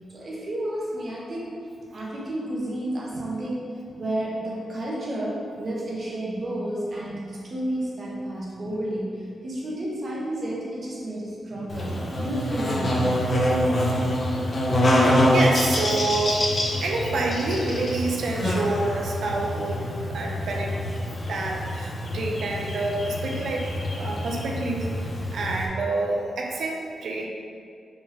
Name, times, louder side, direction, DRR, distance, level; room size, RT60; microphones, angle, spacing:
voice 1, 0.1-1.5 1.9-3.7 4.0-13.0, right 1 dB, 45° right, -5 dB, 1.4 m, -31 dB
Buzz, 11.7-25.7, equal, 35° left, 1.0 m, -25 dB
voice 2, 14.9-16.4 16.8-20.7 21.3-27.3, right 2 dB, 70° right, 0 dB, 0.8 m, -28 dB
5.4 x 5.1 x 3.7 m, 2.3 s
wide cardioid pair, 135°, 0 cm